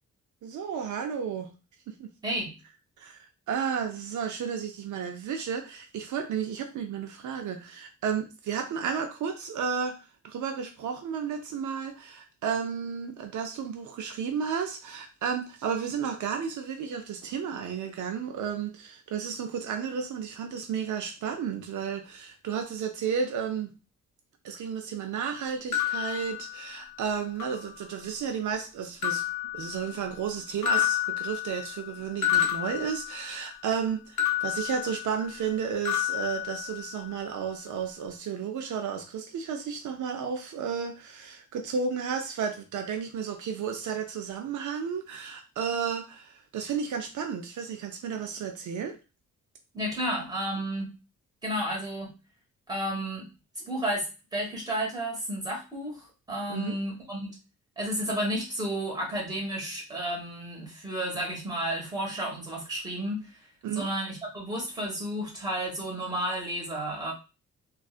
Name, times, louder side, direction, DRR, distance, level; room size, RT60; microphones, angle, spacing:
voice 1, 0.4-1.5 1.9-2.1 3.0-3.2 3.5-23.7 24.4-29.2 29.5-49.0 56.5-56.8 63.6-63.9, right 7 dB, 80° right, 5 dB, 0.6 m, -32 dB
voice 2, 2.2-2.5 49.7-50.9 51.4-52.1 52.7-53.3 53.6-54.1 54.3-57.3 57.8-63.4 63.7-67.1, right 1 dB, 15° right, -2 dB, 1.4 m, -32 dB
sound 1, 25.7-27.0 27.4-28.2 29.0-30.3 30.6-33.6 34.2-35.6 35.8-37.2, left 12 dB, 75° left, 0.7 m, -31 dB
3.7 x 2.3 x 2.4 m, 0.29 s
wide cardioid pair, 135°, 30 cm